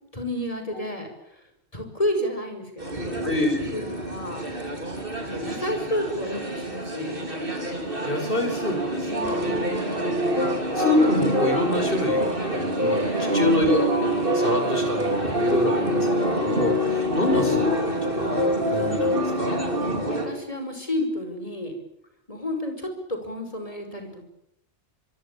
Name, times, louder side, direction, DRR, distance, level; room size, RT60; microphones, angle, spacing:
voice 1, 0.1-1.5 1.7-3.3 3.7-4.5 5.2-7.2 9.1-10.3 13.1-13.4 15.6-15.8 19.8-21.8 22.3-24.3, left 1 dB, 30° left, 5 dB, 6.0 m, -31 dB
sound 1, 2.8-20.3, equal, 50° right, 4.7 m, -26 dB
voice 2, 3.2-3.6 8.1-9.5 10.7-16.0 16.4-19.6, left 2 dB, 50° left, 5 dB, 5.7 m, -26 dB
25.0 x 24.0 x 8.6 m, 0.78 s
omnidirectional pair, 1.2 m